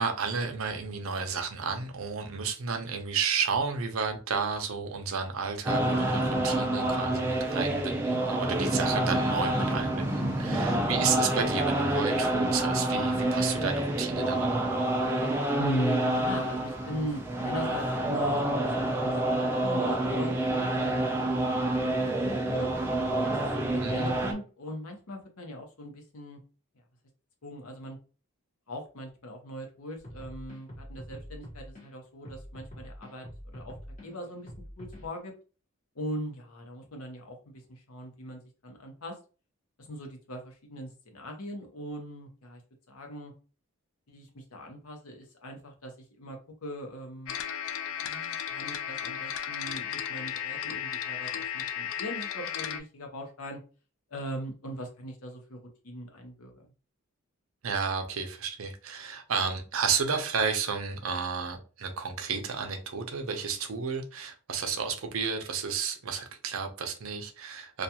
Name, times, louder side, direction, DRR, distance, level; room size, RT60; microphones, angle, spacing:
voice 1, 0.0-14.8 23.8-24.2 57.6-67.8, right 5 dB, 70° right, 0.5 m, -32 dB
sound 1, 5.7-24.3, right 1 dB, 10° right, 0.3 m, -28 dB
voice 2, 10.2-10.6 15.6-18.7 19.0-21.4 21.8-22.7 23.3-26.4 27.4-28.0 28.7-33.7 34.0-35.3 35.9-39.2 39.8-42.6 42.9-43.3 44.1-47.4 47.9-53.6 54.1-56.7, equal, 90° left, 0.8 m, -40 dB
sound 2, 30.0-31.8 32.2-35.2, equal, 35° left, 0.9 m, -45 dB
sound 3, 47.3-52.8, left 9 dB, 70° left, 0.3 m, -34 dB
2.4 x 2.3 x 2.7 m
head